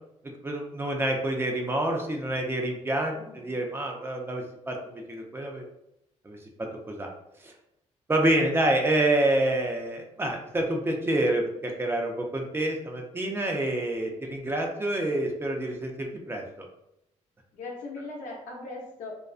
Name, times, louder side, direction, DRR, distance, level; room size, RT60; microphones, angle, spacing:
voice 1, 0.4-5.6 6.2-7.1 7.4-7.5 8.1-16.4, right 1 dB, 20° right, 1 dB, 0.4 m, -27 dB
voice 2, 3.1-3.6 17.5-19.1, left 3 dB, 85° left, -2 dB, 0.7 m, -39 dB
2.4 x 2.2 x 2.4 m, 0.82 s
cardioid pair, 110°, 13 cm